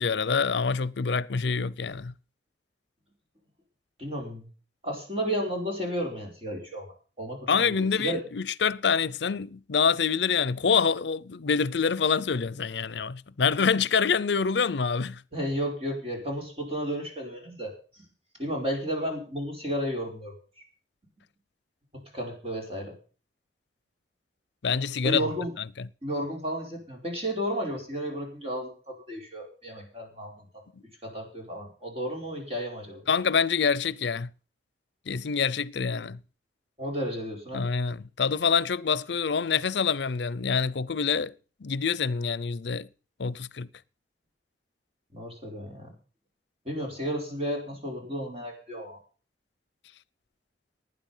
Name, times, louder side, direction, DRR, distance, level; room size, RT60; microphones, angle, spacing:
voice 1, 0.0-2.1 7.5-15.2 24.6-25.2 25.8-25.9 33.1-34.3 35.1-36.2 37.5-41.3 41.6-42.9 43.2-43.7, left 6 dB, 75° left, 0.6 m, -26 dB
voice 2, 4.0-4.5 4.8-6.8 7.2-8.2 15.3-18.0 18.4-20.3 21.9-22.9 25.0-25.5 26.0-30.6 31.0-33.0 36.8-37.7 45.1-45.9 46.6-49.0, equal, 35° right, 4.8 m, -33 dB
19.0 x 9.7 x 5.6 m
head